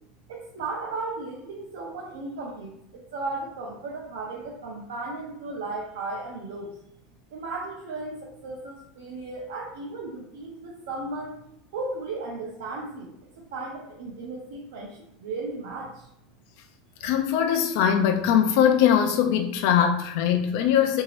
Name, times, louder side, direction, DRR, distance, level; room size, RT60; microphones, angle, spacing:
voice 1, 0.3-6.7 7.3-11.4 11.7-13.1 13.4-16.1, right 3 dB, 90° right, 0.6 m, -35 dB
voice 2, 17.0-21.0, left 9 dB, 55° left, 0.3 m, -21 dB
2.8 x 2.7 x 3.0 m
supercardioid pair, 175°, 0 cm